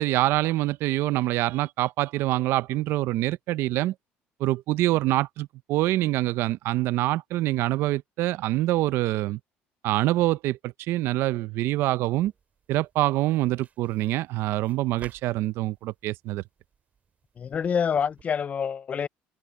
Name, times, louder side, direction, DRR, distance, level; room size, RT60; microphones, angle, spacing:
voice 1, 0.0-3.9 4.4-9.4 9.8-12.3 12.7-16.4, right 16 dB, 70° right, 0.6 m, -25 dB
sound 1, 12.1-18.2, right 7 dB, 35° right, 5.9 m, -55 dB
voice 2, 17.4-19.1, left 7 dB, 35° left, 0.4 m, -27 dB
cardioid pair, 120°, 4 cm